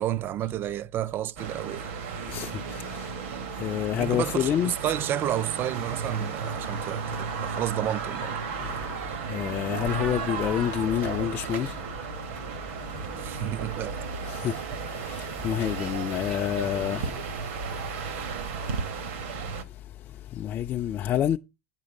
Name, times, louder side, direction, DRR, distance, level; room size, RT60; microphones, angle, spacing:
voice 1, 0.0-1.9 4.0-8.4 13.2-14.1, right 12 dB, 30° right, 0.4 m, -31 dB
sound 1, 1.4-19.6, right 6 dB, 70° right, 1.5 m, -34 dB
voice 2, 2.3-3.1 3.6-4.7 8.6-8.8 9.3-11.7 14.2-14.6 15.0-17.2 20.3-21.4, left 10 dB, 30° left, 0.4 m, -28 dB
9.0 x 5.0 x 6.3 m
supercardioid pair, 135°, 7 cm